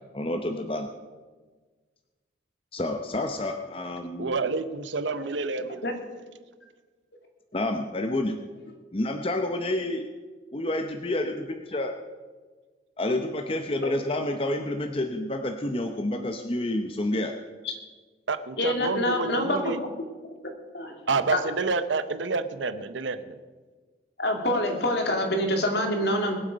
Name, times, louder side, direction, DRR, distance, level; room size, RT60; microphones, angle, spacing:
voice 1, 0.1-0.9 2.7-4.3 7.5-8.4 8.9-10.1 10.5-11.9 13.0-17.4, left 1 dB, 30° left, 5 dB, 0.7 m, -29 dB
voice 2, 4.2-5.8 18.3-19.8 21.1-23.4, right 4 dB, 80° right, 11 dB, 0.8 m, -28 dB
voice 3, 18.6-19.7 20.7-21.0 21.3-21.4 24.2-26.4, left 1 dB, 60° left, 2 dB, 2.4 m, -26 dB
21.5 x 8.0 x 5.1 m, 1.4 s
head